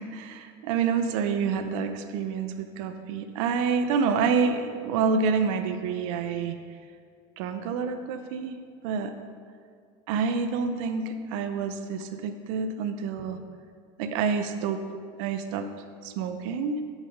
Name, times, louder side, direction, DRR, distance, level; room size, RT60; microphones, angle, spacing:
voice 1, 0.0-6.6 7.4-8.6 8.8-9.1 10.1-13.4 14.0-14.8 15.2-15.7 16.0-16.8, right 5 dB, 75° right, 8 dB, 0.6 m, -28 dB
7.3 x 4.8 x 5.4 m, 2.2 s
cardioid pair, 175°, 17 cm